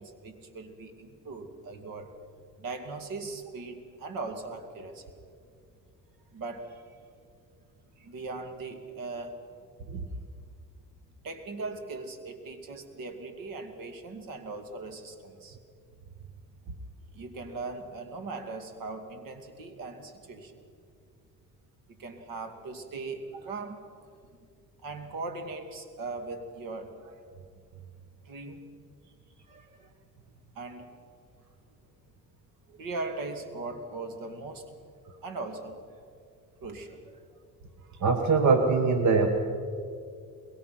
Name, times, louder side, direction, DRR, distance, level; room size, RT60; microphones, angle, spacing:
voice 1, 0.0-2.1 2.6-5.0 6.3-7.0 8.0-9.4 11.2-15.6 17.1-20.5 22.0-24.1 24.8-27.2 28.2-28.7 29.5-29.9 30.5-30.9 32.8-34.7 35.2-36.0 36.6-37.2 37.8-38.0, right 3 dB, 70° right, 7 dB, 2.5 m, -39 dB
voice 2, 38.0-39.3, right 4 dB, 55° right, 5 dB, 1.7 m, -22 dB
23.0 x 21.5 x 6.0 m, 2.3 s
cardioid pair, 115°, 35 cm